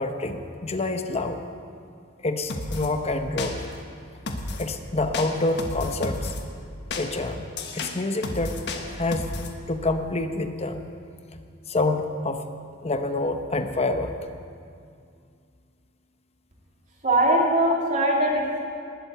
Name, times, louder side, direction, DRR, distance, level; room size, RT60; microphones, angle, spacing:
voice 1, 0.0-1.4 2.2-3.6 4.6-6.3 7.0-8.6 8.9-9.3 9.7-10.9 11.7-12.4 12.8-14.1, left 2 dB, 30° left, 7 dB, 0.9 m, -27 dB
sound 1, 2.5-2.9 3.4-3.8 4.3-4.7 5.1-6.4 6.9-9.5, left 2 dB, 55° left, 1.3 m, -33 dB
voice 2, 17.0-18.6, right 1 dB, 40° right, -3 dB, 3.1 m, -21 dB
19.5 x 7.8 x 7.9 m, 2.3 s
head